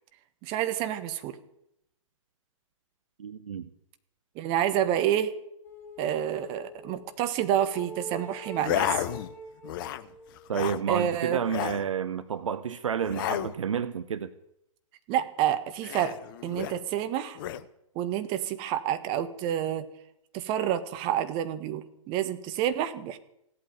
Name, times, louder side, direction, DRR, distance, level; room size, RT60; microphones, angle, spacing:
voice 1, 0.4-1.3 4.3-5.3 6.0-8.9 10.9-11.4 15.1-16.2 16.4-17.4 17.9-19.9 20.3-23.2, right 10 dB, 30° right, 10 dB, 1.5 m, -28 dB
voice 2, 3.2-3.7 10.5-14.3, right 7 dB, 65° right, 14 dB, 0.9 m, -30 dB
sound 1, 5.6-7.2 7.7-10.5, equal, 10° left, 3.7 m, -44 dB
sound 2, 8.6-9.3 9.6-10.1 10.3-10.8 11.4-11.9 13.0-13.5 15.8-16.8 17.3-17.6, left 11 dB, 40° left, 0.9 m, -32 dB
17.0 x 8.7 x 9.3 m, 0.79 s
figure-of-eight pair, 120°, 18 cm